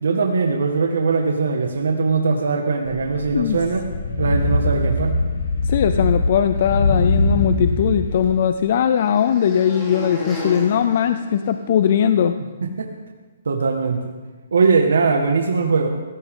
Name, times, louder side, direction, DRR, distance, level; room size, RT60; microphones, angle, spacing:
voice 1, 0.0-3.8 4.2-5.1 12.6-12.9 13.5-14.1 14.5-15.9, right 4 dB, 90° right, 2 dB, 1.8 m, -20 dB
sound 1, 2.9-8.2, left 2 dB, 75° left, 6.7 m, -22 dB
voice 2, 5.7-12.4, left 8 dB, 35° left, 10 dB, 0.5 m, -19 dB
sound 2, 8.0-12.0, left 1 dB, 10° left, 3.3 m, -35 dB
19.5 x 16.5 x 3.8 m, 1.3 s
hypercardioid pair, 175°, 0 cm